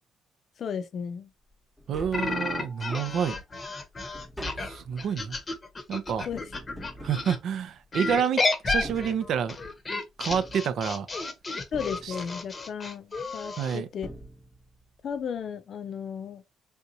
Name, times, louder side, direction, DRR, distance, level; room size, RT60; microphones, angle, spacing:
voice 1, 0.6-1.3 6.2-6.9 11.7-14.1 15.0-16.4, left 7 dB, 55° left, 0.5 m, -35 dB
Tap, 1.5-1.6 1.8-2.9 3.3-8.1 8.7-9.7 10.3-11.3 11.7-12.6 13.6-13.7 14.0-14.9 15.1-15.2, right 1 dB, ahead, 0.9 m, -45 dB
voice 2, 1.9-3.4 4.6-5.4 5.9-6.3 7.0-9.6 10.2-11.1 12.0-12.1 13.6-13.9, right 7 dB, 65° right, 0.5 m, -28 dB
sound 1, 2.1-7.4 7.9-13.8, left 3 dB, 30° left, 0.8 m, -32 dB
3.5 x 2.7 x 2.7 m
cardioid pair, 90°, 0 cm